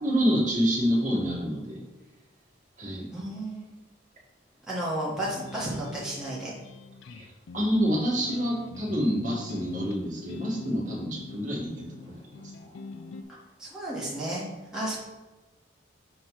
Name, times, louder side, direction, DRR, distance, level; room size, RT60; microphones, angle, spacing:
voice 1, 0.0-1.8 2.8-3.1 7.2-7.3 7.5-12.2, equal, 40° right, -4 dB, 1.7 m, -27 dB
voice 2, 3.1-3.6 4.7-6.5 13.6-14.4 14.7-15.0, right 1 dB, 5° right, -7 dB, 1.3 m, -32 dB
sound 1, 5.3-13.2, left 4 dB, 75° left, 0.5 m, -43 dB
6.5 x 3.2 x 5.7 m, 1.2 s
head